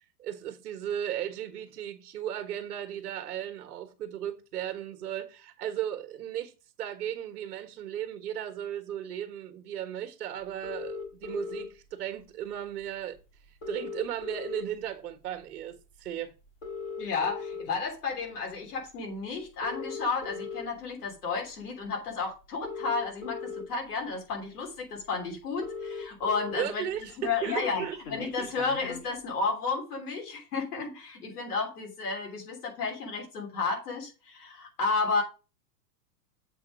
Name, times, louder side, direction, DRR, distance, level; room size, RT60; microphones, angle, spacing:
voice 1, 0.2-6.5 6.8-13.2 13.7-16.3 26.5-28.0 28.4-28.5, right 10 dB, 65° right, 1.3 m, -36 dB
sound 1, 10.6-11.6 12.8-12.9 13.2-13.3 13.5-14.9 15.4-15.6 16.5-17.6 18.3-18.6 19.5-20.6 21.8-21.9 22.4-23.6 24.3-24.4 24.7-24.8 25.0-25.1 25.3-26.6 26.9-29.1, left 4 dB, 25° left, 1.2 m, -38 dB
voice 2, 17.0-26.9 27.2-35.2, left 4 dB, 70° left, 3.4 m, -32 dB
7.4 x 3.6 x 6.2 m
supercardioid pair, 175°, 48 cm